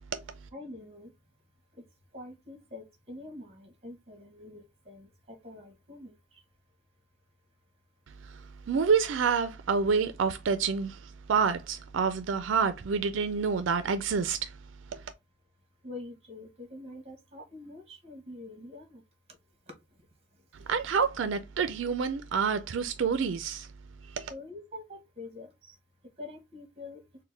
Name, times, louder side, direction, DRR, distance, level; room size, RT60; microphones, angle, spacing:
voice 1, 0.5-1.1 2.1-6.1 15.8-19.0 24.3-25.7 26.2-27.0, left 2 dB, 30° right, 1.2 m, -45 dB
voice 2, 8.1-14.6 14.9-15.0 20.7-23.7 24.1-24.3, right 5 dB, 85° right, 0.4 m, -28 dB
4.2 x 2.2 x 3.2 m
head